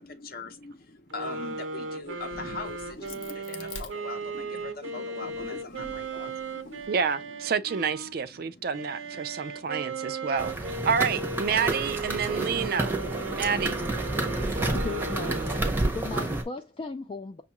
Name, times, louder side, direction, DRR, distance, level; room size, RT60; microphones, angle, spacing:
voice 1, 0.0-7.4 8.0-10.3, left 3 dB, 50° left, 0.7 m, -42 dB
sound 1, 1.1-8.1 8.7-15.9, right 3 dB, 90° right, 0.9 m, -36 dB
Crack, 2.0-4.7 5.2-6.9, left 4 dB, 90° left, 0.8 m, -47 dB
voice 2, 6.9-12.9 13.3-13.8, right 6 dB, 50° right, 0.4 m, -29 dB
sound 2, 10.4-16.4, right 2 dB, 10° right, 0.7 m, -30 dB
voice 3, 14.7-17.4, left 3 dB, 30° left, 0.3 m, -37 dB
6.1 x 2.4 x 2.9 m
head